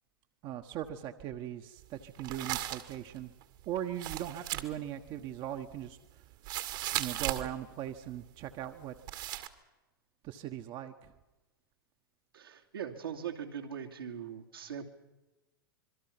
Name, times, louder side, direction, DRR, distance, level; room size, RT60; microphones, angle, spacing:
voice 1, 0.4-3.3 3.7-6.0 6.9-8.9 10.2-11.1, right 11 dB, 40° right, 6 dB, 1.3 m, -39 dB
sound 1, 1.8-7.5 7.9-8.2 8.5-8.8 9.1-9.5, right 15 dB, 60° right, 2.0 m, -37 dB
voice 2, 12.3-14.9, right 8 dB, 80° right, 0 dB, 2.9 m, -41 dB
26.0 x 23.0 x 6.0 m, 1.1 s
hypercardioid pair, 95°, 12 cm